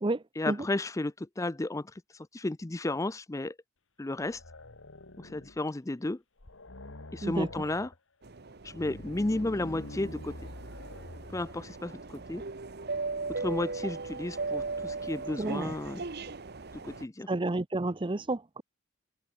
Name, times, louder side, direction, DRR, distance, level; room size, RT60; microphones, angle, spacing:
voice 1, 0.4-3.6 4.0-4.4 5.2-6.2 7.1-7.9 8.6-10.3 11.3-12.4 13.4-16.0 16.8-17.3, left 2 dB, 15° left, 0.5 m, -33 dB
sound 1, 4.2-5.7 6.0-6.1 6.4-8.0 8.6-11.7, left 1 dB, 85° left, 2.2 m, -46 dB
sound 2, 8.2-17.1, right 3 dB, 55° right, 1.1 m, -38 dB
voice 2, 15.4-15.7 17.3-18.6, right 2 dB, 25° right, 0.6 m, -30 dB
open air
head